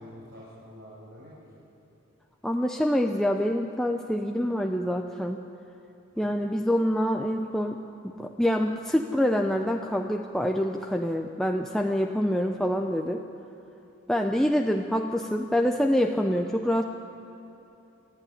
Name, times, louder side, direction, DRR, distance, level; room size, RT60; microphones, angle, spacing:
voice 1, 0.0-1.6 6.1-6.5 14.3-14.6, equal, 60° right, -7 dB, 5.5 m, -48 dB
voice 2, 2.4-5.4 6.2-13.2 14.1-16.8, equal, ahead, 2 dB, 0.6 m, -26 dB
27.5 x 11.5 x 9.9 m, 3.0 s
head